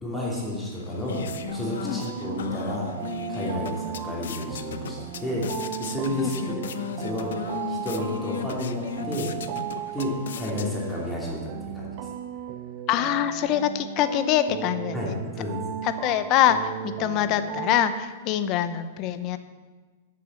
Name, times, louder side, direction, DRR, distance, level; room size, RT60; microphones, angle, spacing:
voice 1, 0.0-1.2 1.5-2.9 3.3-5.5 5.8-6.6 6.9-9.3 9.9-12.1 14.9-15.6, left 1 dB, 5° left, -5 dB, 2.8 m, -31 dB
sound 1, 0.6-11.1, left 8 dB, 85° left, 0.8 m, -37 dB
sound 2, 1.1-18.0, right 11 dB, 40° right, 0.6 m, -36 dB
voice 2, 6.2-6.5 12.9-15.2 15.8-19.4, left 11 dB, 35° left, 11 dB, 0.7 m, -24 dB
11.5 x 6.8 x 8.2 m, 1.3 s
supercardioid pair, 160°, 0 cm